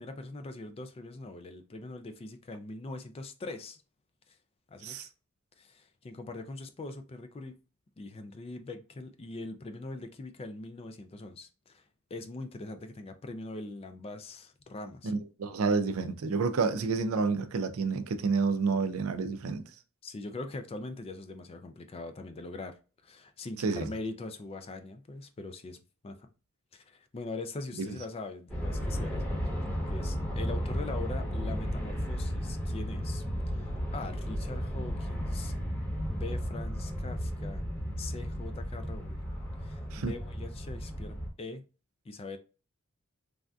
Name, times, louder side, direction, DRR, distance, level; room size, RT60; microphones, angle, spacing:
voice 1, 0.0-3.8 4.3-4.4 4.7-5.1 5.6-7.5 8.0-11.8 12.1-15.1 20.0-25.8 26.0-26.3 26.7-35.6 36.1-37.6 38.0-39.3 39.6-41.6 42.1-42.4, left 2 dB, 25° left, 0.3 m, -42 dB
voice 2, 15.0-19.6 23.6-23.9 27.8-27.9 39.9-40.1, right 4 dB, 75° right, 0.4 m, -29 dB
Aircraft, 28.5-41.3, equal, 5° left, 0.9 m, -34 dB
3.4 x 2.6 x 2.2 m
head